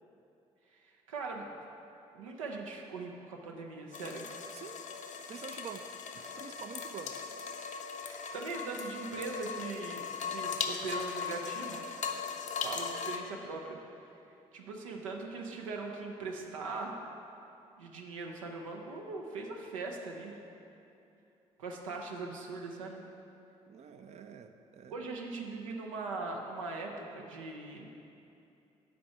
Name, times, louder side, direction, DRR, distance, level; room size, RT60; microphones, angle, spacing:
voice 1, 0.7-1.7 2.1-4.3 8.0-11.8 12.6-13.8 14.5-17.0 17.8-20.4 21.6-23.0 24.9-27.9, right 3 dB, 85° right, 1 dB, 0.5 m, -40 dB
sound 1, 3.9-13.2, left 6 dB, 50° left, 0.6 m, -39 dB
voice 2, 5.3-7.2 23.7-24.9, right 6 dB, 45° right, 7 dB, 0.4 m, -47 dB
6.1 x 4.4 x 5.8 m, 2.7 s
hypercardioid pair, 45°, 17 cm